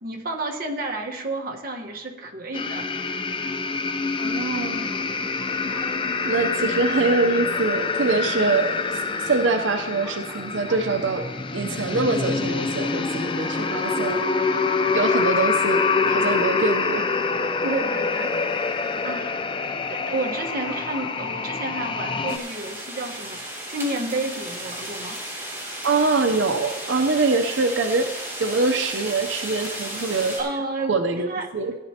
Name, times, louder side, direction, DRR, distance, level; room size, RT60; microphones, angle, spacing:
voice 1, 0.0-2.9 17.6-18.3 19.0-19.4 19.9-25.1 30.4-31.5, right 2 dB, 50° right, 1 dB, 1.4 m, -30 dB
sound 1, 2.5-22.4, left 4 dB, 25° left, 0.5 m, -26 dB
voice 2, 4.2-4.9 6.2-17.1 25.8-28.1 28.4-30.4 30.8-31.3 31.5-31.8, right 3 dB, 90° right, 7 dB, 0.7 m, -24 dB
sound 2, 4.5-5.9 7.0-7.9 9.1-9.2 9.5-9.6 10.0-11.0 11.6-12.3 12.6-14.3 14.8-15.5 15.9-16.2 17.1-17.6 18.1-18.2 20.4-21.3 21.8-22.3, left 1 dB, 5° left, 3.4 m, -46 dB
sound 3, 22.3-30.4, right 1 dB, 15° right, 3.4 m, -34 dB
16.0 x 10.5 x 2.9 m, 1.1 s
head